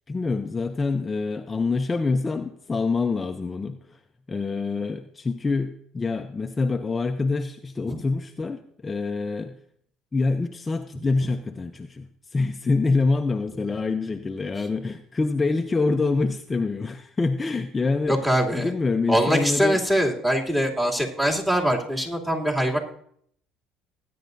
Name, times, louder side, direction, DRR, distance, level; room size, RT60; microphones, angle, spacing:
voice 1, 0.1-4.0 4.3-9.6 10.1-18.2 18.5-19.8, left 3 dB, 20° left, 6 dB, 0.6 m, -26 dB
voice 2, 18.1-18.7 19.1-22.8, equal, 10° right, -1 dB, 2.8 m, -23 dB
19.5 x 9.4 x 2.7 m, 0.66 s
supercardioid pair, 85°, 0 cm